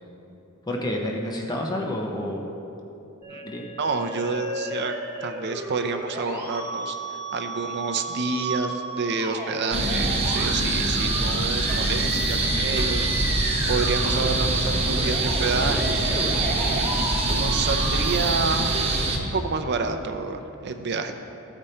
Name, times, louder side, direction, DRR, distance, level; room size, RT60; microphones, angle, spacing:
voice 1, 0.7-2.4 3.4-3.6, left 1 dB, 20° left, 0 dB, 0.7 m, -29 dB
Musical instrument, 3.2-19.2, right 1 dB, 10° right, 1.8 m, -34 dB
voice 2, 3.8-4.9 5.2-7.0 7.3-13.1 13.7-16.3 16.6-18.7 19.2-21.1, right 4 dB, 50° right, 7 dB, 0.5 m, -29 dB
sound 1, 9.7-19.2, right 2 dB, 30° right, 0.9 m, -24 dB
13.5 x 5.1 x 4.3 m, 2.8 s
head